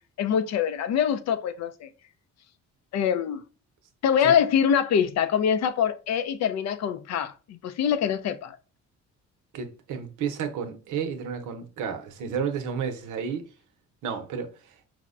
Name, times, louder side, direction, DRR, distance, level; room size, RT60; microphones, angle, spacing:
voice 1, 0.2-1.9 2.9-3.4 4.0-8.6, left 8 dB, 60° left, 0.4 m, -24 dB
voice 2, 9.5-13.4 14.0-14.7, right 7 dB, 80° right, 0.7 m, -32 dB
4.6 x 2.1 x 2.4 m
cardioid pair, 90°, 30 cm